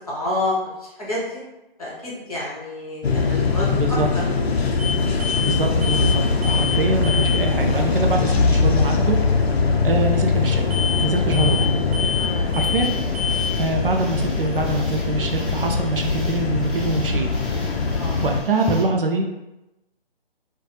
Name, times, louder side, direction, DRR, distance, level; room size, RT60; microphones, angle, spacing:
voice 1, 0.1-0.5 1.0-1.4 1.8-4.6 9.6-9.8 12.1-12.5 17.9-18.2, left 1 dB, 35° left, -6 dB, 0.8 m, -29 dB
sound 1, 3.0-18.4, left 4 dB, 90° left, 0.5 m, -22 dB
voice 2, 3.7-4.1 5.4-9.2 9.8-10.6 11.0-11.7 12.5-12.9 13.6-17.3 18.2-19.4, right 2 dB, 65° right, 2 dB, 0.4 m, -24 dB
sound 2, 4.8-4.9 5.2-5.5 5.8-6.2 6.4-6.8 7.0-7.4 10.7-11.1 11.3-11.7 11.9-12.3 12.5-12.9 13.1-13.5, left 6 dB, 80° right, 0.8 m, -26 dB
sound 3, 12.8-18.8, left 1 dB, ahead, 0.3 m, -36 dB
2.5 x 2.2 x 2.7 m, 0.95 s
figure-of-eight pair, 175°, 30 cm